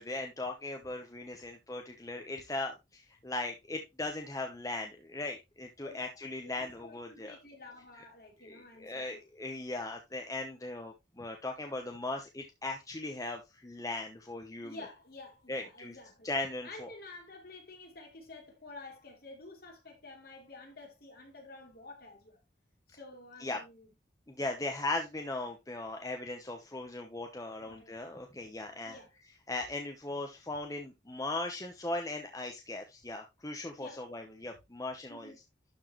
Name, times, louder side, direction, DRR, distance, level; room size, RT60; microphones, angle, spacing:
voice 1, 0.0-7.4 8.4-14.8 15.5-15.9 16.2-16.9 23.4-23.6 24.3-29.0 29.5-35.3, left 2 dB, 20° left, 1.0 m, -38 dB
voice 2, 6.4-9.2 14.6-16.3 16.6-22.4 22.9-23.9 27.6-27.9 28.8-29.1 33.8-34.1 35.1-35.4, left 2 dB, 55° left, 3.3 m, -50 dB
12.0 x 4.6 x 3.1 m
head